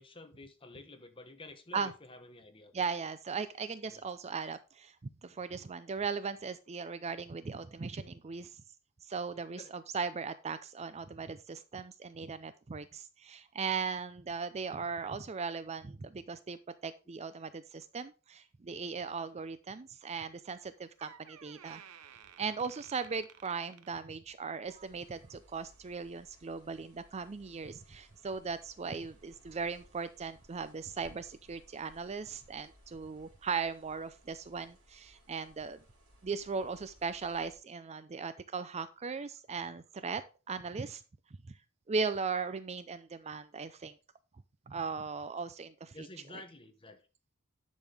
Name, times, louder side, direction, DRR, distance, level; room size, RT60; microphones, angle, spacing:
voice 1, 0.0-2.8 3.9-4.1 9.3-9.7 45.9-47.1, left 2 dB, 25° left, 7 dB, 1.2 m, -51 dB
voice 2, 2.7-5.0 5.2-8.6 9.0-21.8 22.4-35.8 36.2-41.0 41.5-41.6 41.9-44.0 44.7-46.1, right 5 dB, 30° right, 13 dB, 0.4 m, -38 dB
Door, 20.5-20.7 21.0-24.5 24.8-25.1 25.9-26.0, right 8 dB, 85° right, 0.7 m, -55 dB
sound 1, 24.6-37.6, equal, 70° right, 4.7 m, -62 dB
10.5 x 6.3 x 3.5 m, 0.32 s
head